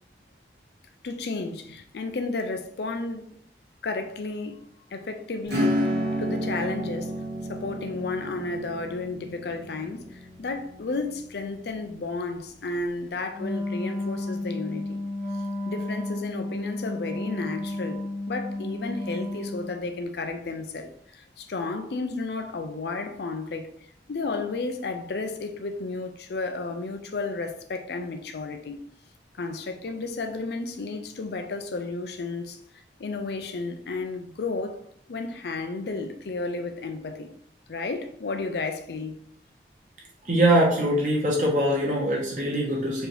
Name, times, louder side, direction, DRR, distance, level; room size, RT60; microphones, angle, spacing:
voice 1, 1.0-3.4 3.8-5.8 6.2-7.1 7.5-15.0 15.7-23.7 24.1-28.8 29.3-32.6 33.0-37.3 37.7-39.2, left 3 dB, 70° left, 0.5 m, -32 dB
Acoustic guitar / Strum, 5.5-11.7, equal, 80° right, 1.6 m, -31 dB
Wind instrument woodwind instrument, 13.3-19.8, left 2 dB, 65° right, 1.4 m, -32 dB
voice 2, 40.2-43.1, right 1 dB, 45° right, 1.3 m, -22 dB
4.5 x 2.8 x 3.3 m
head